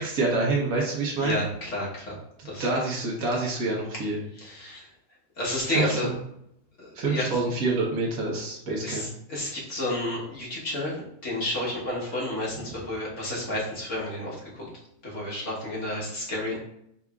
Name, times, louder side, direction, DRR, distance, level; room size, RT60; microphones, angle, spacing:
voice 1, 0.0-1.4 2.4-4.2 5.7-6.1 6.9-9.1 12.7-12.8, right 3 dB, 85° right, -3 dB, 1.5 m, -27 dB
voice 2, 1.2-2.2 2.4-2.7 4.4-4.9 5.4-6.1 6.8-7.3 8.8-14.7 15.0-16.6, left 1 dB, 60° left, -5 dB, 1.7 m, -31 dB
4.9 x 4.1 x 2.4 m, 0.76 s
omnidirectional pair, 1.4 m